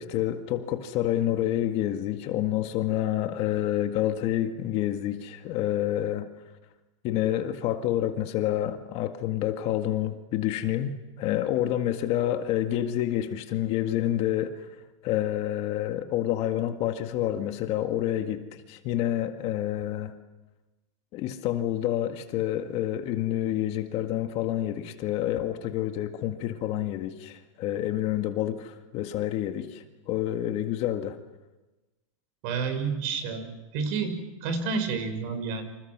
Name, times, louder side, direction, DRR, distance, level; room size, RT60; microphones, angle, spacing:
voice 1, 0.0-6.3 7.0-14.7 15.0-20.1 21.1-31.2, left 12 dB, 35° left, 6 dB, 1.9 m, -28 dB
voice 2, 32.4-33.5 33.7-35.6, right 5 dB, 45° right, 8 dB, 6.2 m, -29 dB
29.5 x 27.0 x 6.2 m, 1.1 s
supercardioid pair, 140°, 17 cm